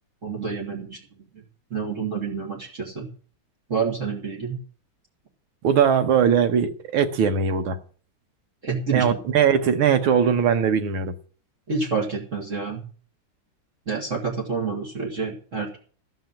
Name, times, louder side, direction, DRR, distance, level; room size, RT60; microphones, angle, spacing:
voice 1, 0.2-1.4 1.7-3.1 3.7-4.6 8.6-9.0 11.7-12.8 13.9-15.8, right 5 dB, 40° right, 2.4 m, -28 dB
voice 2, 5.6-7.8 8.9-11.1, right 7 dB, 85° right, 2.0 m, -20 dB
15.0 x 5.6 x 8.9 m
omnidirectional pair, 2.2 m